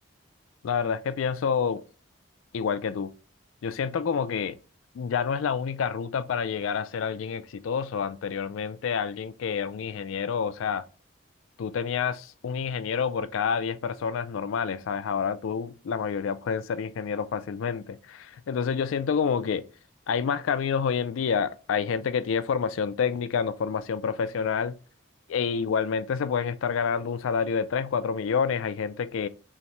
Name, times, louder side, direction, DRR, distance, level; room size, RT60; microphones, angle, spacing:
voice 1, 0.6-1.8 2.5-3.1 3.6-4.6 4.9-10.8 11.6-19.6 20.1-24.8 25.3-29.3, left 6 dB, 80° left, 0.3 m, -28 dB
5.6 x 2.1 x 2.9 m
head